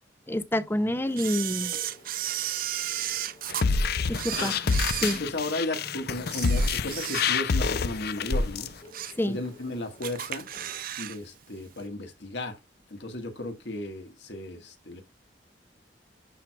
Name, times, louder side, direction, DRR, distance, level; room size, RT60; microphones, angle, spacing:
voice 1, 0.3-1.7 4.1-4.6 5.0-5.2 9.2-9.4, left 1 dB, 15° left, 0.6 m, -27 dB
sound 1, 0.9-10.8, left 2 dB, 40° left, 2.1 m, -52 dB
Camera, 1.2-3.7 4.1-5.8 6.2-7.6 8.0-8.1 8.6-9.3 9.6-9.7 10.0-11.2 11.4-11.5, right 12 dB, 55° right, 0.5 m, -34 dB
sound 2, 3.5-8.7, left 4 dB, 60° left, 0.6 m, -27 dB
voice 2, 5.2-8.7 9.3-10.5 11.0-12.6 12.9-15.0, left 1 dB, 75° left, 1.8 m, -35 dB
11.0 x 4.7 x 2.4 m
head